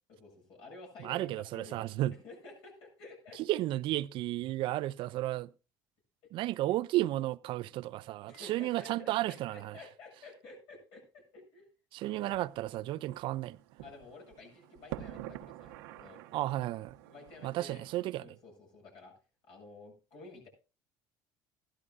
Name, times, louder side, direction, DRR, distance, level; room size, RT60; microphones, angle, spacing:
voice 1, 0.1-3.4 6.4-6.5 7.6-7.7 8.3-11.7 12.0-12.4 13.8-16.2 17.1-17.8 18.2-19.1 19.5-20.5, left 3 dB, 70° left, 7.8 m, -52 dB
voice 2, 1.0-2.1 3.5-5.5 6.3-9.7 11.9-13.6 16.3-17.0 17.4-18.3, right 16 dB, 65° right, 0.5 m, -33 dB
sound 1, 12.0-18.0, right 13 dB, 85° right, 1.0 m, -48 dB
16.0 x 12.5 x 2.5 m
supercardioid pair, 80°, 9 cm